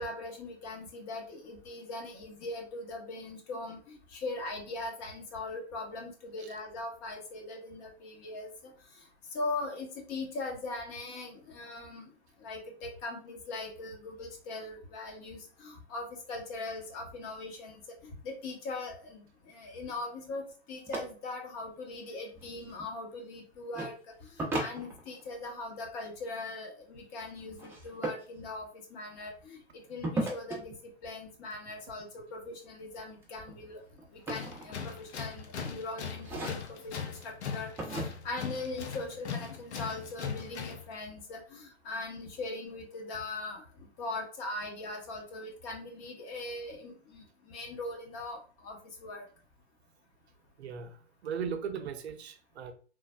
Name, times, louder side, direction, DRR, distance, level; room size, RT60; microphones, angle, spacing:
voice 1, 0.0-8.7 9.3-12.1 12.4-20.4 20.7-30.7 31.0-33.8 34.1-49.2, left 2 dB, 35° left, 0.9 m, -40 dB
sound 1, 20.9-21.0 22.3-22.9 23.7-23.9 24.4-25.4 27.6-28.2 30.0-30.6 32.5-32.8 33.2-35.1 35.5-35.8 36.2-36.9 37.8-38.0, right 2 dB, 5° right, 0.5 m, -36 dB
Tools, 34.3-40.9, left 6 dB, 80° left, 0.6 m, -39 dB
voice 2, 50.6-51.0 51.2-52.7, right 7 dB, 75° right, 0.5 m, -37 dB
3.2 x 2.0 x 2.3 m
hypercardioid pair, 110°, 33 cm